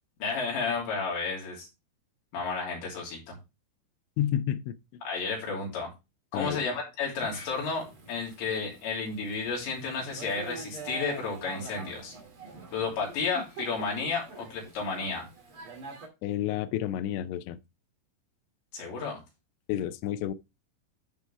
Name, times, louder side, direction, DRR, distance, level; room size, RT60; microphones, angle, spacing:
voice 1, 0.2-1.7 2.3-3.4 5.0-5.9 6.3-12.1 12.7-15.2 18.7-19.2, left 4 dB, 65° left, 5.0 m, -32 dB
voice 2, 4.2-4.7 6.3-6.6 16.2-17.6 19.7-20.3, left 11 dB, 90° left, 2.5 m, -30 dB
Thunder / Rain, 7.2-16.1, right 4 dB, 40° right, 2.1 m, -45 dB
12.5 x 4.5 x 3.3 m
omnidirectional pair, 5.7 m